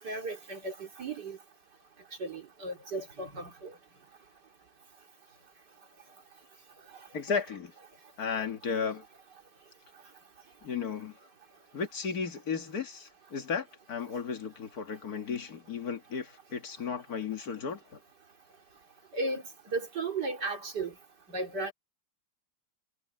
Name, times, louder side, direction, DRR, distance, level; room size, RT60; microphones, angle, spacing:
voice 1, 0.0-1.4 2.2-3.7 19.1-20.9 21.3-21.7, right 3 dB, 70° right, 3.7 m, -35 dB
voice 2, 7.1-7.7 8.2-9.0 10.6-11.1 11.7-17.8, left 6 dB, 55° left, 2.3 m, -34 dB
omnidirectional pair, 1.9 m